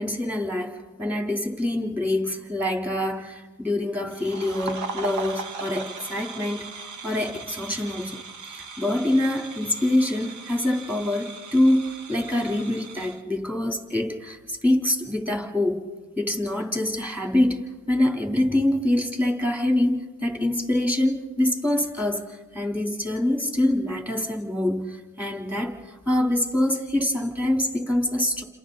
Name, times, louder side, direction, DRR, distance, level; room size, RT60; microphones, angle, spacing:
voice 1, 0.0-6.7 7.0-15.9 16.2-28.4, left 1 dB, 5° right, 2 dB, 3.6 m, -25 dB
sound 1, 4.1-13.2, right 4 dB, 70° right, 1.9 m, -38 dB
29.5 x 27.0 x 4.1 m, 1.2 s
cardioid pair, 90°, 30 cm